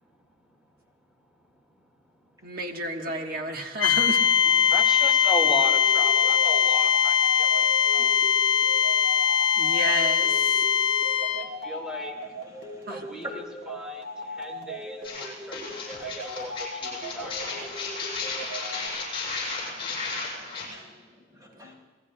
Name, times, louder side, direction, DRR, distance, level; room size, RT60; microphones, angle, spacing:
voice 1, 0.1-0.7 1.3-1.9 2.2-2.5 4.2-8.2 11.6-12.2 12.9-17.8, left 1 dB, 5° right, 1 dB, 2.0 m, -37 dB
voice 2, 2.4-4.2 8.0-8.1 9.6-10.6 12.9-13.0, right 1 dB, 50° right, 2 dB, 1.4 m, -31 dB
sound 1, 3.8-11.5, left 8 dB, 75° left, 0.8 m, -21 dB
sound 2, 5.4-18.9, equal, 85° right, 3.1 m, -39 dB
voice 3, 12.5-13.0 19.6-20.2 20.5-21.7, left 1 dB, 20° right, -1 dB, 5.0 m, -53 dB
sound 3, 15.0-20.7, left 3 dB, 30° left, 6.8 m, -34 dB
28.5 x 19.0 x 2.3 m, 1.4 s
head